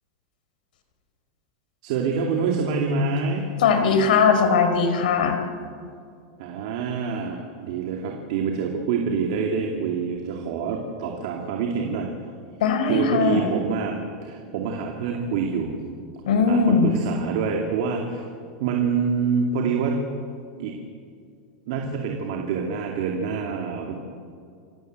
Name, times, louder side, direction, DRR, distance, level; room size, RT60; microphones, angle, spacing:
voice 1, 1.8-3.5 6.4-12.1 12.9-15.8 16.5-18.3 18.6-20.1 20.6-20.8 21.7-23.9, right 5 dB, 50° right, 1 dB, 2.6 m, -26 dB
voice 2, 3.6-5.4 12.6-13.5 16.2-17.0, left 5 dB, 85° left, 7 dB, 4.4 m, -19 dB
27.5 x 16.0 x 8.0 m, 2.3 s
supercardioid pair, 175°, 4 cm